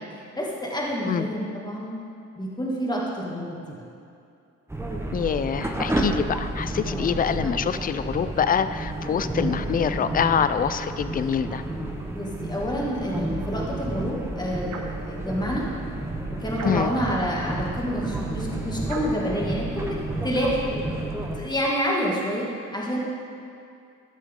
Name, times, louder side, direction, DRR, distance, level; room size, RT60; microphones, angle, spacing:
voice 1, 0.3-1.9 2.4-3.8 6.9-7.2 12.1-14.7 15.0-15.6 16.4-20.0 20.2-20.6 21.4-23.0, equal, 15° left, -4 dB, 1.9 m, -28 dB
sound 1, 4.7-21.4, right 1 dB, 10° right, 1.0 m, -31 dB
voice 2, 5.1-11.6 16.6-16.9, left 7 dB, 30° left, 12 dB, 0.4 m, -25 dB
sound 2, 14.7-15.1 16.5-17.1 18.8-19.3, right 3 dB, 65° right, 1.2 m, -37 dB
14.0 x 6.2 x 3.7 m, 2.5 s
cardioid pair, 90°, 30 cm